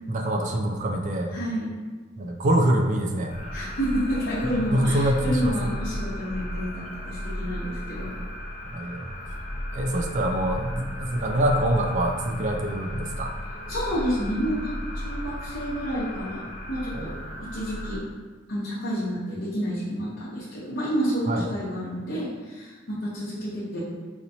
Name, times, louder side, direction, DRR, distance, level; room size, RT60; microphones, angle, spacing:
voice 1, 0.1-1.3 2.2-3.3 4.7-5.7 8.7-9.1 9.7-13.3 16.9-17.2 21.3-21.5, right 1 dB, 40° right, 2 dB, 0.4 m, -25 dB
voice 2, 1.3-1.7 3.5-8.1 13.7-17.1 17.4-18.0 18.5-23.8, equal, 60° left, -10 dB, 0.8 m, -29 dB
sound 1, 3.3-18.0, left 1 dB, 35° left, 0.5 m, -35 dB
4.3 x 2.9 x 2.7 m, 1.4 s
head